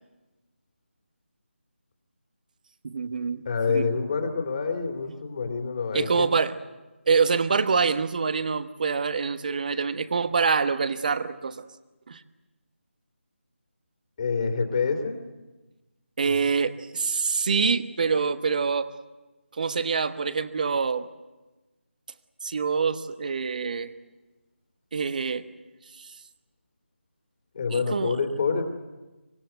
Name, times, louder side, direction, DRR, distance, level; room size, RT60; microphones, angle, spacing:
voice 1, 2.8-3.4 3.7-3.9 5.9-6.5 7.1-11.6 12.1-12.2 16.2-18.9 19.6-21.1 22.4-23.9 24.9-25.4 26.0-26.1 27.7-28.2, right 5 dB, 40° right, 11 dB, 1.2 m, -25 dB
voice 2, 3.4-6.3 14.2-15.2 16.2-16.4 27.5-28.7, left 5 dB, 35° left, 5 dB, 2.9 m, -27 dB
25.0 x 22.0 x 8.0 m, 1.2 s
figure-of-eight pair, 165°, 7 cm